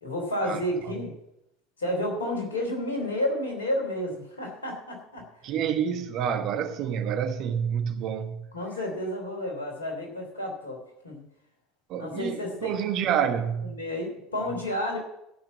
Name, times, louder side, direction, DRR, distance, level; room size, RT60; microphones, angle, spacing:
voice 1, 0.0-1.1 1.8-5.3 8.5-11.2 12.0-12.8 13.2-13.3 13.6-15.0, left 1 dB, 80° left, 3.1 m, -31 dB
voice 2, 5.4-8.4 11.9-13.8, right 8 dB, 50° right, 1.3 m, -28 dB
14.0 x 5.8 x 7.3 m
figure-of-eight pair, 70°, 0 cm